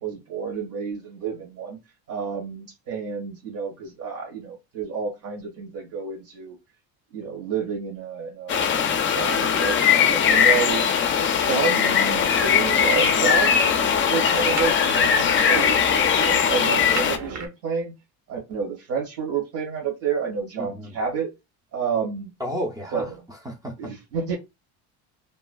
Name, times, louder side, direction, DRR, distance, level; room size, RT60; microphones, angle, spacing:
voice 1, 0.0-1.8 2.1-6.6 7.1-10.8 11.1-13.7 14.1-17.9 18.3-21.3 21.7-22.3 22.9-23.1 23.8-24.3, right 6 dB, 65° right, 1.5 m, -30 dB
sound 1, 8.5-17.2, left 7 dB, 35° left, 0.5 m, -20 dB
sound 2, 12.1-17.5, right 4 dB, 45° right, 0.9 m, -35 dB
voice 2, 20.6-21.0 22.4-23.9, equal, 10° right, 0.6 m, -33 dB
3.1 x 2.3 x 2.2 m
cardioid pair, 110°, 35 cm